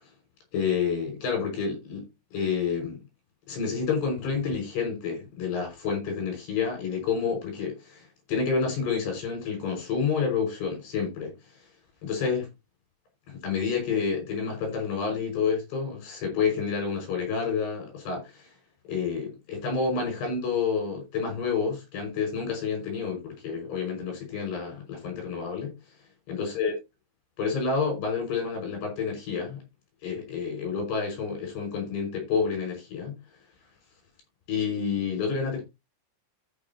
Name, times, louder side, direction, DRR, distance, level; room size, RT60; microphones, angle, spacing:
voice 1, 0.5-2.0 2.3-3.0 3.5-11.3 12.0-12.5 13.3-18.5 18.9-25.7 26.3-26.7 27.4-29.6 30.0-33.2 34.5-35.6, left 5 dB, 55° left, 7.8 m, -29 dB
14.0 x 7.0 x 3.0 m
omnidirectional pair, 6.0 m